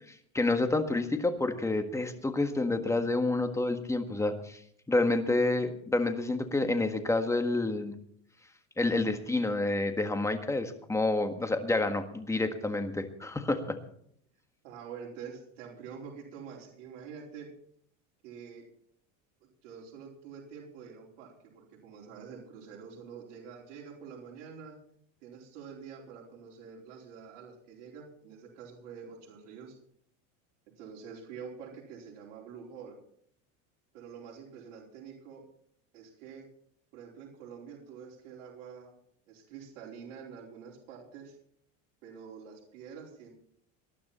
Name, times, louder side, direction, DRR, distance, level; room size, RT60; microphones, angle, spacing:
voice 1, 0.3-4.6 4.9-7.9 8.8-13.8, left 2 dB, 10° left, 7 dB, 1.6 m, -29 dB
voice 2, 14.6-17.5 18.2-18.7 19.4-24.8 25.2-29.7 30.8-33.0 33.9-35.4 35.9-36.5 36.9-38.9 39.3-41.3 42.0-43.3, right 6 dB, 75° right, -3 dB, 4.6 m, -47 dB
19.5 x 12.0 x 4.3 m, 0.66 s
supercardioid pair, 130°, 38 cm